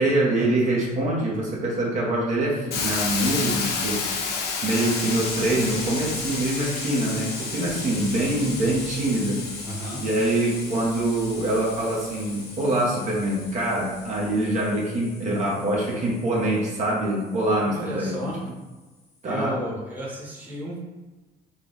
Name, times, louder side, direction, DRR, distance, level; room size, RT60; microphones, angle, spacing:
voice 1, 0.0-4.1 4.6-9.5 10.0-18.3 19.2-19.6, right 1 dB, 45° right, -4 dB, 1.0 m, -24 dB
Hiss, 2.7-12.6, left 5 dB, 70° left, 0.7 m, -32 dB
sound 1, 4.7-18.3, left 2 dB, 40° left, 0.9 m, -38 dB
voice 2, 9.6-10.0 17.6-18.4 19.2-20.8, right 1 dB, 10° right, -5 dB, 1.2 m, -33 dB
3.9 x 2.3 x 3.9 m, 1.2 s
cardioid pair, 110°, 17 cm